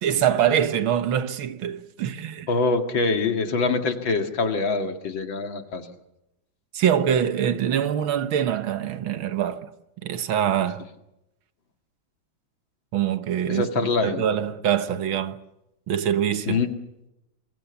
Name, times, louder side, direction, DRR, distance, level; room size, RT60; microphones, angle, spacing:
voice 1, 0.0-2.5 6.7-9.7 10.0-10.8 12.9-15.4 15.9-16.6, right 9 dB, 75° right, 2.0 m, -24 dB
voice 2, 2.5-5.9 13.5-14.3 16.5-16.7, left 3 dB, 65° left, 2.9 m, -24 dB
28.0 x 24.0 x 7.1 m
omnidirectional pair, 2.2 m